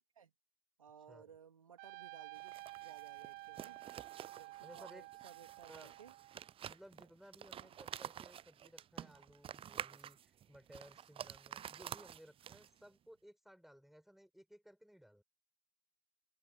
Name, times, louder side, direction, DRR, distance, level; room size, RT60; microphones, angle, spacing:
voice 1, 0.8-3.8 4.3-6.1 7.5-7.8 11.5-11.8, right 7 dB, 90° right, 3.2 m, -59 dB
Trumpet, 1.8-6.5, right 20 dB, 65° right, 3.5 m, -52 dB
Cardboard Box, 2.3-12.9, right 10 dB, 35° right, 0.5 m, -50 dB
voice 2, 4.6-5.1 5.7-5.9 6.6-15.2, equal, ahead, 7.6 m, -59 dB
open air
hypercardioid pair, 65°, 17 cm